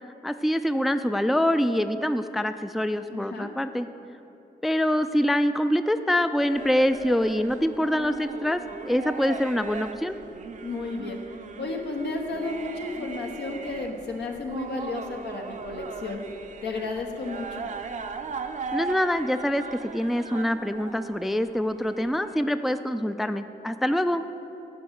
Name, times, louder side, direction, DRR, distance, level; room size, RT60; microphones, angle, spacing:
voice 1, 0.2-3.9 4.6-10.2 18.7-24.2, equal, ahead, 10 dB, 0.3 m, -25 dB
voice 2, 3.1-3.5 10.6-11.2 11.6-16.2 16.6-17.7, left 3 dB, 80° left, 2 dB, 1.1 m, -32 dB
sound 1, 6.5-22.4, right 5 dB, 45° right, 0.6 m, -38 dB
10.0 x 5.3 x 6.4 m, 2.9 s
cardioid pair, 60°, 18 cm